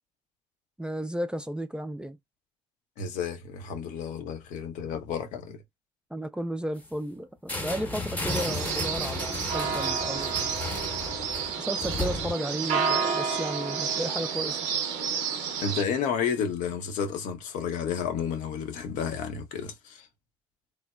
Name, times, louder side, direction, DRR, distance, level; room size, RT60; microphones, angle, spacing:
voice 1, 0.8-2.2 6.1-10.3 11.6-14.6, right 1 dB, 5° right, 0.3 m, -33 dB
voice 2, 3.0-5.6 15.6-20.1, left 7 dB, 65° left, 0.6 m, -31 dB
sound 1, 7.5-12.3, left 2 dB, 10° left, 0.8 m, -34 dB
sound 2, 8.3-15.8, right 6 dB, 75° right, 0.5 m, -30 dB
3.0 x 2.0 x 2.3 m
hypercardioid pair, 50°, 14 cm